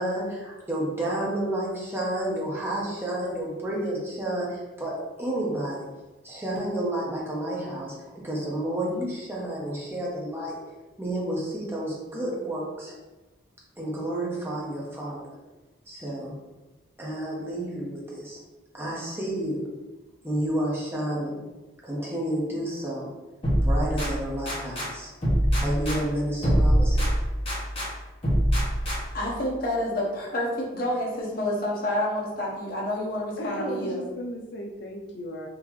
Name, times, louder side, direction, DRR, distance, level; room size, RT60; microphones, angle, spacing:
voice 1, 0.0-5.9 6.2-7.9 8.2-10.6 11.0-12.9 13.8-15.3 15.9-16.3 17.0-18.4 18.7-19.6 20.2-21.4 21.8-23.1 23.6-25.1 25.6-27.1, right 1 dB, 10° right, -5 dB, 0.7 m, -30 dB
sound 1, 23.4-24.9 25.2-27.9 28.2-29.3, equal, 30° left, 1.2 m, -24 dB
voice 2, 29.1-34.0, left 1 dB, 50° left, -4 dB, 0.9 m, -28 dB
voice 3, 33.4-35.5, equal, 65° left, 0 dB, 0.4 m, -36 dB
3.8 x 2.8 x 3.0 m, 1.1 s
head